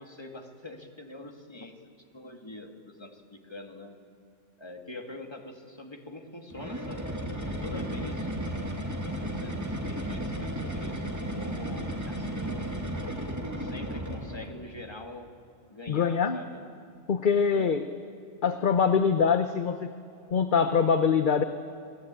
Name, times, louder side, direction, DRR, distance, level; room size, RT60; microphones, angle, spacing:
voice 1, 0.0-1.8 2.1-4.0 4.6-8.3 9.2-12.8 13.6-15.4 15.7-16.7 17.6-17.8, left 2 dB, 20° left, 3 dB, 2.2 m, -44 dB
sound 1, 6.5-14.5, right 1 dB, 15° right, 2.3 m, -34 dB
voice 2, 15.9-16.4 17.1-17.8 18.4-19.9 20.3-21.4, left 6 dB, 45° left, 9 dB, 0.9 m, -23 dB
28.0 x 19.5 x 9.0 m, 2.6 s
omnidirectional pair, 1.3 m